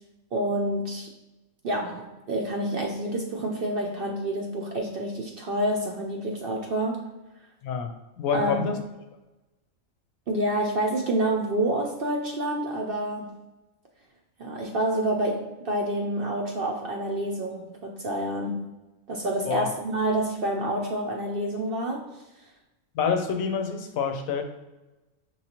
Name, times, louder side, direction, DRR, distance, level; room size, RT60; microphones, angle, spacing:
voice 1, 0.3-1.1 1.6-7.1 8.3-8.8 10.3-13.3 14.4-18.6 19.1-22.2, right 1 dB, 60° right, 0 dB, 0.6 m, -28 dB
voice 2, 7.6-8.8 19.5-19.7 22.9-24.4, left 6 dB, 90° left, 6 dB, 1.1 m, -27 dB
5.4 x 3.1 x 2.8 m, 1.1 s
omnidirectional pair, 1.4 m